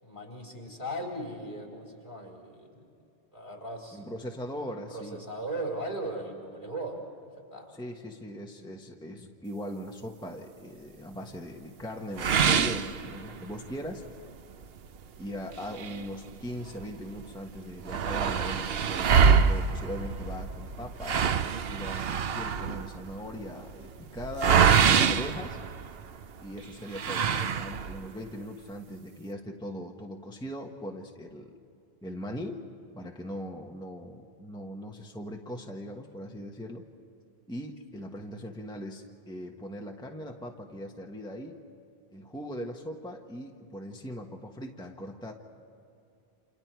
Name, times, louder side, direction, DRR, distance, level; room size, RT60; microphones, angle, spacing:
voice 1, 0.0-2.8 3.3-4.0 4.7-7.7, right 1 dB, 50° left, -1 dB, 4.5 m, -38 dB
voice 2, 3.9-5.2 7.7-14.0 15.2-21.3 21.7-25.6 26.4-31.5 32.0-32.7 32.9-36.8 37.5-41.6 42.1-45.3, equal, 5° left, 1 dB, 1.3 m, -40 dB
sound 1, 12.2-13.6 14.1-14.2 14.6-14.7 15.5-16.9 17.2-17.3 17.5-26.2 26.9-28.1, right 6 dB, 65° right, 1.0 m, -25 dB
29.5 x 27.5 x 4.7 m, 2.6 s
omnidirectional pair, 1.1 m